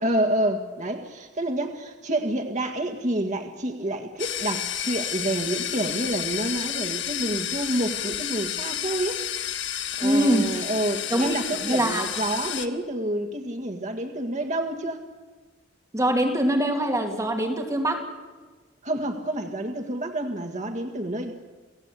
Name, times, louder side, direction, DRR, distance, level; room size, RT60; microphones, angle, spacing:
voice 1, 0.0-9.2 9.5-9.7 10.0-15.0 18.8-21.3, right 1 dB, 40° right, 4 dB, 1.8 m, -28 dB
sound 1, 4.2-12.7, left 10 dB, 75° left, 1.7 m, -31 dB
voice 2, 10.0-10.5 11.1-12.0 15.9-18.0, right 1 dB, 20° right, 2 dB, 2.6 m, -23 dB
29.0 x 17.5 x 8.4 m, 1.3 s
head